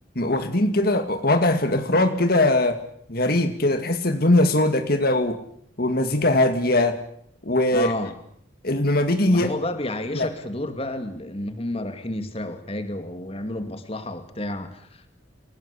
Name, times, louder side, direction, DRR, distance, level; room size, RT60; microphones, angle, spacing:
voice 1, 0.2-2.8 3.1-5.4 5.8-7.0 7.4-7.9 8.6-9.5 10.1-10.3, left 1 dB, 50° left, 7 dB, 2.2 m, -21 dB
voice 2, 7.7-8.2 9.3-15.1, left 1 dB, 30° left, 8 dB, 2.5 m, -31 dB
29.0 x 18.5 x 8.6 m, 0.68 s
head